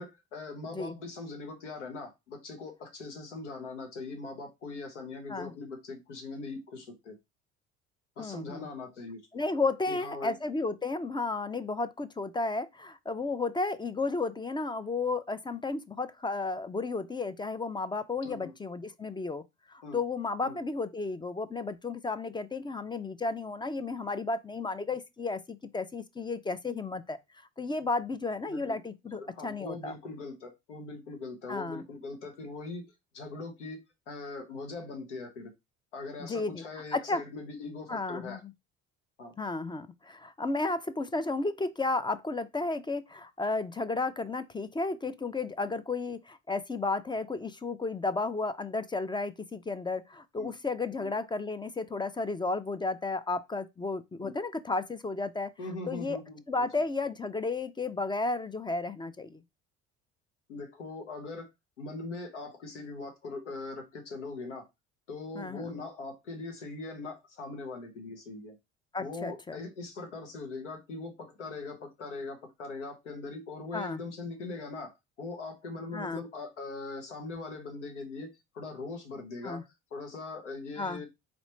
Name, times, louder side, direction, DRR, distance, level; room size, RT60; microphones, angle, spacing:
voice 1, 0.0-7.2 8.2-9.2 9.9-10.4 18.2-18.5 19.8-20.0 20.4-20.6 28.5-28.8 29.1-32.8 33.1-33.8 34.1-35.5 35.9-38.4 39.2-39.3 50.4-50.5 51.0-51.1 54.2-54.3 55.6-56.7 60.5-61.5 61.8-64.6 65.1-68.6 69.0-74.9 75.2-78.3 78.5-79.6 79.9-81.1, left 3 dB, 90° left, 1.1 m, -41 dB
voice 2, 0.7-1.0 5.3-5.5 8.2-8.7 9.3-27.2 27.6-30.0 31.5-31.8 36.2-36.6 36.9-37.2 37.9-38.5 39.4-55.5 55.9-56.2 56.5-59.4 65.4-65.8 68.9-69.6 73.7-74.0 75.9-76.2 79.4-79.6 80.8-81.0, left 3 dB, 15° left, 0.4 m, -33 dB
4.1 x 3.0 x 3.0 m
hypercardioid pair, 60°, 35 cm